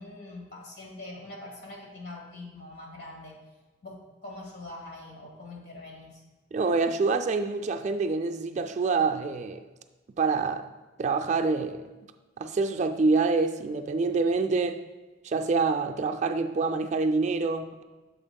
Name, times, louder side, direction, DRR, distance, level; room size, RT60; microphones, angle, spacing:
voice 1, 0.0-3.4 3.8-6.2, left 2 dB, 65° left, -1 dB, 1.7 m, -43 dB
voice 2, 6.5-9.6 10.2-10.7 11.0-11.9 12.4-14.8 15.2-17.8, right 4 dB, 40° right, 7 dB, 0.4 m, -26 dB
8.9 x 7.0 x 2.3 m, 1.2 s
head